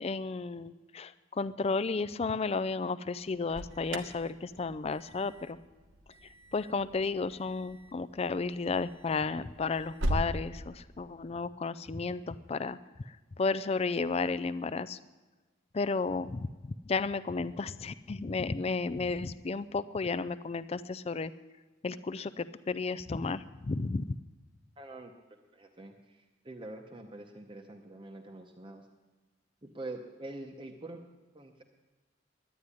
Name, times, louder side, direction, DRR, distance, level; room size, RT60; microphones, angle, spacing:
voice 1, 0.0-5.6 6.2-12.8 13.1-15.0 15.7-16.5 16.9-21.3 21.8-24.2, left 4 dB, 30° left, 15 dB, 0.4 m, -33 dB
Alarm, 3.2-10.3, right 1 dB, 70° right, 1.2 m, -40 dB
voice 2, 24.8-25.1 25.5-28.9 29.6-31.0 31.3-31.6, right 2 dB, 25° right, 3 dB, 0.8 m, -45 dB
11.0 x 10.0 x 9.7 m, 1.3 s
head